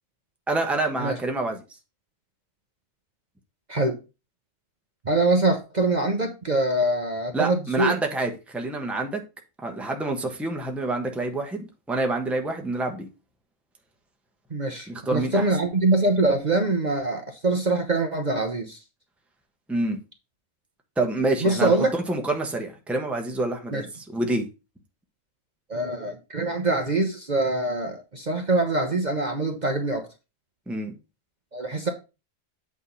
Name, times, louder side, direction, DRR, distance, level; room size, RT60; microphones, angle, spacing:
voice 1, 0.5-1.8 7.3-9.2 9.6-13.1 14.9-15.5 19.7-20.0 21.0-24.5 30.7-30.9, right 2 dB, ahead, 1.1 m, -27 dB
voice 2, 5.0-7.9 14.5-18.8 21.4-21.9 23.7-23.8 25.7-30.1 31.5-31.9, right 2 dB, 35° right, 1.1 m, -24 dB
8.4 x 3.6 x 5.6 m
omnidirectional pair, 1.4 m